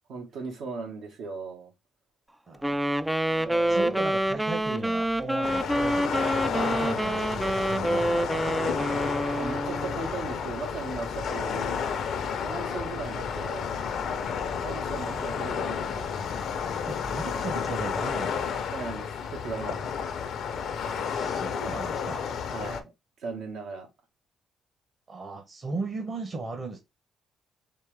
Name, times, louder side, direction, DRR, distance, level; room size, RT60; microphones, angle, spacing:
voice 1, 0.1-1.7 3.2-4.0 6.8-7.0 9.4-11.9 12.4-13.7 14.6-16.1 18.7-19.9 22.5-22.9 23.2-23.9, right 4 dB, 80° right, 1.7 m, -37 dB
voice 2, 2.5-2.9 3.7-9.2 12.4-12.6 14.9-15.7 16.9-18.5 20.8-22.3 25.1-26.8, right 3 dB, 45° right, 1.2 m, -37 dB
sound 1, 2.6-19.6, left 3 dB, 40° left, 0.6 m, -46 dB
Wind instrument woodwind instrument, 2.6-10.1, right 1 dB, 5° right, 0.3 m, -27 dB
sound 2, 5.4-22.8, left 7 dB, 75° left, 0.7 m, -31 dB
4.4 x 3.0 x 3.5 m
cardioid pair, 90°, 0 cm